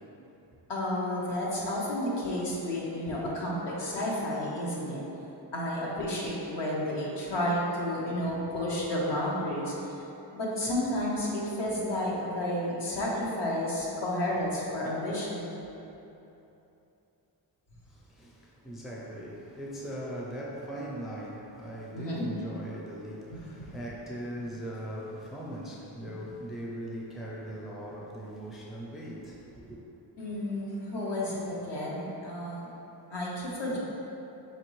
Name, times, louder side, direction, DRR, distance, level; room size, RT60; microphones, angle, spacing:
voice 1, 0.7-5.0 5.5-9.9 10.3-15.5 21.9-22.3 23.3-23.7 30.2-32.7 33.1-33.8, left 1 dB, 70° left, -5 dB, 1.0 m, -31 dB
voice 2, 17.9-29.8, right 1 dB, ahead, -4 dB, 0.4 m, -40 dB
5.1 x 3.1 x 3.0 m, 3.0 s
wide cardioid pair, 115°, 44 cm